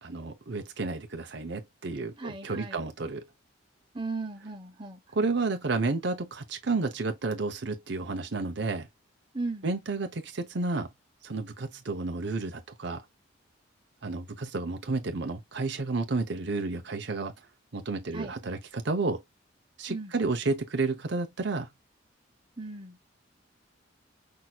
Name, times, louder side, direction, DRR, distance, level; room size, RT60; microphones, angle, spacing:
voice 1, 0.0-3.3 5.1-8.9 9.6-10.9 11.2-13.0 14.0-17.3 17.7-19.2 19.8-21.7, right 3 dB, 60° right, 0.8 m, -31 dB
voice 2, 2.2-2.8 3.9-5.0 9.3-9.7 18.1-18.3 19.9-20.1 22.6-23.0, right 3 dB, 25° right, 1.1 m, -36 dB
6.0 x 2.8 x 2.3 m
head